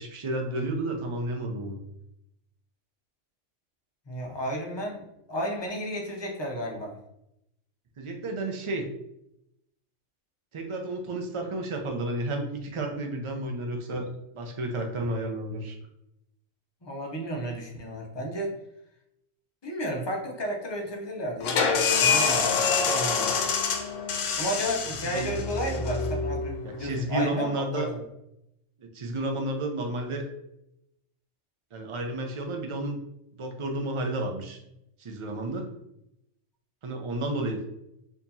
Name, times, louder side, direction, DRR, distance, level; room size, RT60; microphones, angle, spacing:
voice 1, 0.0-1.8 8.0-8.9 10.5-14.1 14.3-15.8 25.1-25.4 26.6-27.9 28.8-30.3 31.7-33.0 33.4-34.6 35.0-35.7 36.8-37.6, right 2 dB, 50° right, 3 dB, 0.3 m, -31 dB
voice 2, 4.1-7.0 16.8-18.5 19.6-23.4 24.4-28.0, equal, 30° left, 0 dB, 0.5 m, -33 dB
sound 1, 21.4-26.9, left 5 dB, 80° left, 0.9 m, -26 dB
4.4 x 2.8 x 2.7 m, 0.83 s
omnidirectional pair, 1.3 m